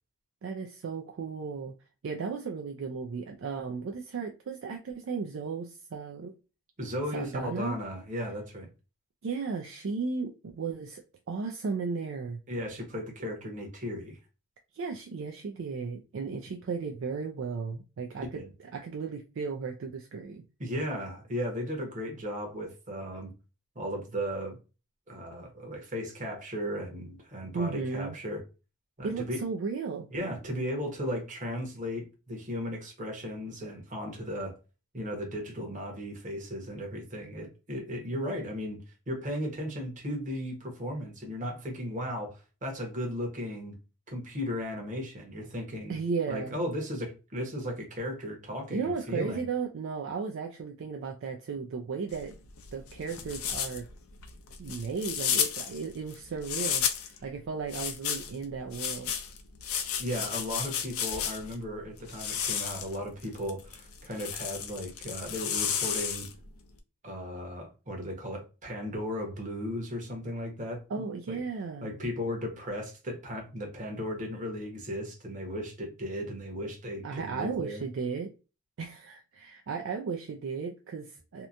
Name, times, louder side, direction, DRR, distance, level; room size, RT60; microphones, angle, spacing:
voice 1, 0.4-1.7 2.0-6.3 7.1-7.8 9.2-12.4 14.7-18.4 18.7-20.4 27.5-28.2 29.0-30.1 45.9-46.6 48.7-52.3 52.7-53.9 54.6-59.1 70.9-72.0 77.0-78.3 78.8-81.5, right 5 dB, 60° right, 0.4 m, -35 dB
voice 2, 6.8-8.7 12.5-14.2 18.3-18.5 20.6-23.3 23.7-24.6 25.1-28.4 29.0-29.4 30.1-34.5 34.9-38.8 39.1-43.7 44.1-45.9 46.3-49.4 60.0-66.3 67.0-71.4 71.8-77.8, equal, 35° right, 1.0 m, -36 dB
sound 1, 52.1-57.2 57.7-61.6 62.1-66.5, left 8 dB, 80° left, 0.5 m, -33 dB
2.8 x 2.1 x 2.5 m
head